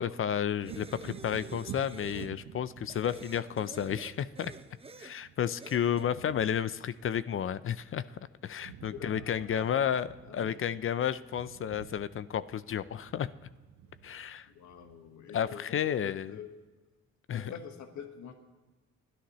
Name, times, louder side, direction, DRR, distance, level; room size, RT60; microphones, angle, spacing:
voice 1, 0.0-4.5 5.0-10.1 10.3-13.3 14.0-14.5 15.3-16.4 17.3-17.5, left 9 dB, 45° left, 15 dB, 0.5 m, -32 dB
sound 1, 0.6-2.3 2.9-5.2 5.6-6.1, right 4 dB, 20° right, 0.8 m, -49 dB
Wind / Thunder, 0.6-8.2 8.4-15.7 16.1-16.2, right 9 dB, 90° right, 0.9 m, -50 dB
voice 2, 8.9-10.0 10.2-10.6 14.5-16.5 17.3-18.3, left 7 dB, 70° left, 5 dB, 1.5 m, -46 dB
27.0 x 10.0 x 3.1 m, 1.2 s
cardioid pair, 90°, 30 cm